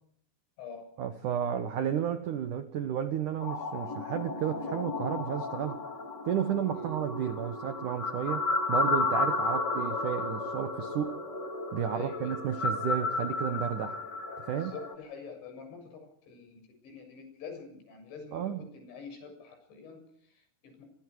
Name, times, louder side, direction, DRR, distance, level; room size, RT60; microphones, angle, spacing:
voice 1, 1.0-5.8 6.3-11.2 11.7-14.0 14.4-14.7 18.3-18.6, right 9 dB, 80° right, 9 dB, 1.8 m, -32 dB
sound 1, 3.4-14.9, left 3 dB, 45° left, 1.4 m, -33 dB
voice 2, 11.9-12.4 14.5-20.9, left 5 dB, 65° left, 6 dB, 9.4 m, -46 dB
28.0 x 24.5 x 4.9 m, 0.67 s
omnidirectional pair, 5.8 m